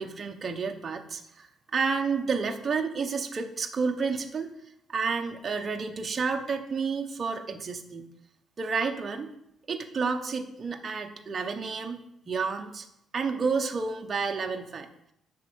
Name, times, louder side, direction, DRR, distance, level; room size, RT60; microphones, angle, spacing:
voice 1, 0.0-1.5 1.7-4.5 4.9-8.1 8.6-9.3 9.7-12.0 12.3-12.8 13.1-14.9, right 5 dB, 30° right, 3 dB, 1.0 m, -30 dB
8.2 x 6.1 x 8.2 m, 0.78 s
cardioid pair, 155°, 0 cm